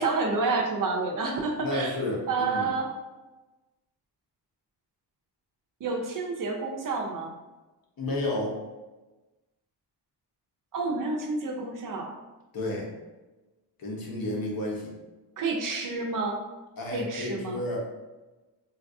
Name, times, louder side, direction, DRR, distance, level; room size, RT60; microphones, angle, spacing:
voice 1, 0.0-1.9 2.3-2.9 5.8-7.3 10.7-12.1 15.4-16.4 16.9-17.6, right 3 dB, 50° right, 1 dB, 0.5 m, -29 dB
voice 2, 1.6-2.7 8.0-8.6 12.5-12.9 13.8-14.9 16.8-17.9, left 1 dB, 55° left, -2 dB, 0.9 m, -31 dB
3.9 x 2.3 x 2.6 m, 1.1 s
wide cardioid pair, 135°, 42 cm